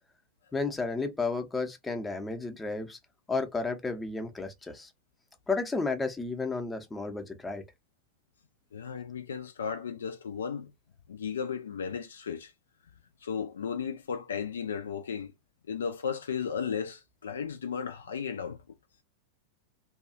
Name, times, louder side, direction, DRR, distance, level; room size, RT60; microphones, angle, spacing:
voice 1, 0.5-3.0 3.3-4.9 5.5-7.6, left 3 dB, 10° left, 0.6 m, -32 dB
voice 2, 8.7-10.7 11.1-12.5 13.2-15.3 15.7-18.6, left 7 dB, 65° left, 0.4 m, -35 dB
2.7 x 2.3 x 2.4 m
figure-of-eight pair, 90°, 0 cm